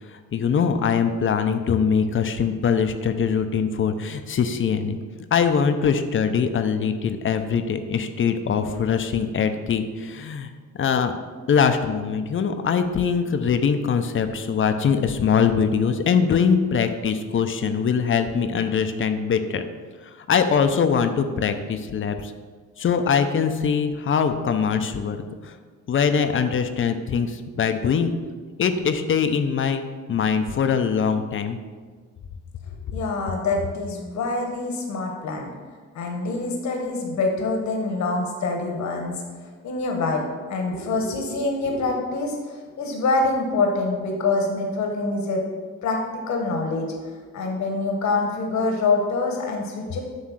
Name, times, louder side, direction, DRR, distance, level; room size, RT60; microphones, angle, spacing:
voice 1, 0.1-5.0 5.3-10.5 10.8-11.1 11.5-19.6 20.2-22.3 22.8-25.2 25.4-25.5 25.9-28.1 28.6-29.8 30.1-31.6, left 6 dB, 45° left, 8 dB, 0.6 m, -22 dB
voice 2, 32.6-35.5 35.9-39.2 39.6-45.4 45.8-46.9 47.3-50.0, left 3 dB, 65° left, 2 dB, 1.3 m, -25 dB
7.6 x 3.2 x 6.1 m, 1.5 s
cardioid pair, 90°, 30 cm